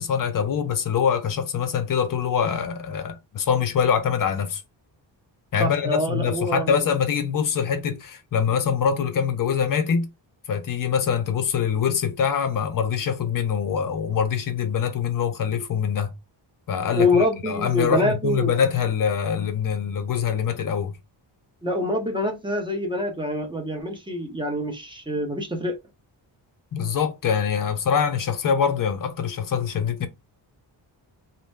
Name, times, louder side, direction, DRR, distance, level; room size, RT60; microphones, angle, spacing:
voice 1, 0.0-4.6 5.5-10.1 10.5-16.1 16.7-21.0 26.7-30.1, left 7 dB, 45° left, 0.6 m, -24 dB
voice 2, 5.6-6.8 16.9-18.5 21.6-25.8, left 1 dB, 10° right, 0.7 m, -25 dB
2.6 x 2.1 x 3.3 m
wide cardioid pair, 130°, 45 cm